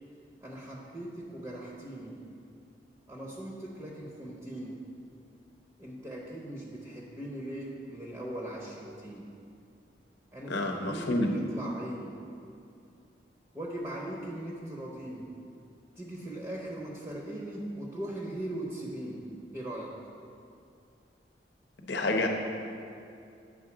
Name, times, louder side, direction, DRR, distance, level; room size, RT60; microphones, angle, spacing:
voice 1, 0.4-2.2 3.1-4.9 5.8-9.3 10.3-12.2 13.5-15.4 16.0-19.3 19.5-20.0, right 1 dB, 15° right, -4 dB, 0.7 m, -39 dB
voice 2, 10.5-11.3 21.8-22.3, left 2 dB, 70° left, 3 dB, 0.8 m, -28 dB
8.7 x 3.8 x 5.9 m, 2.5 s
head